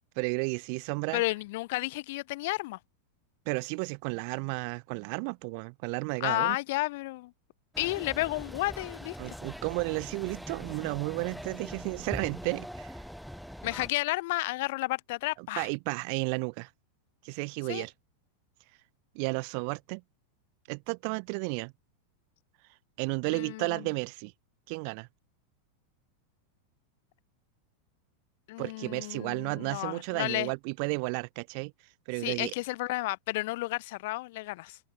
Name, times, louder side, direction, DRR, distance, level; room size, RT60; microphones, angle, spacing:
voice 1, 0.2-1.2 3.5-6.6 9.2-13.0 15.4-16.7 17.2-17.9 19.1-20.0 20.7-21.7 23.0-24.3 24.7-25.1 28.6-31.7 32.1-32.5, right 40 dB or more, 50° right, 0.8 m, -33 dB
voice 2, 1.1-2.8 6.2-7.3 7.8-9.2 13.6-15.7 17.7-17.8 23.3-23.8 28.5-30.5 32.2-34.8, left 21 dB, 55° left, 0.7 m, -32 dB
sound 1, 7.7-13.9, equal, ahead, 1.8 m, -42 dB
figure-of-eight pair, 90°, 0 cm